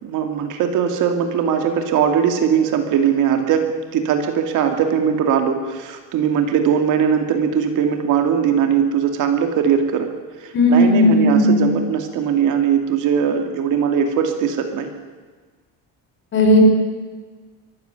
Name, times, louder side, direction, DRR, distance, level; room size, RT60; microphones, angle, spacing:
voice 1, 0.0-10.1 10.4-14.9, right 7 dB, 50° right, 5 dB, 2.5 m, -20 dB
voice 2, 10.5-11.6 16.3-16.6, left 1 dB, 30° left, 3 dB, 4.6 m, -14 dB
24.5 x 14.0 x 9.5 m, 1.4 s
cardioid pair, 175°, 40 cm